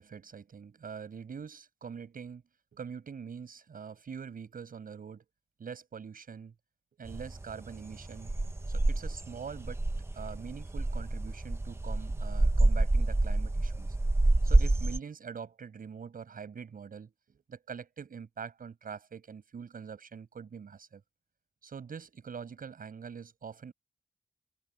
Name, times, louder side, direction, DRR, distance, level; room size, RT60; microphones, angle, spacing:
voice 1, 0.0-2.4 2.7-5.2 5.6-6.5 7.0-8.3 8.7-9.9 10.1-14.0 14.4-21.0 21.6-23.7, right 6 dB, 60° right, 6.2 m, -44 dB
sound 1, 7.0-15.0, right 2 dB, 15° right, 1.0 m, -28 dB
wide cardioid pair, 160°, 16 cm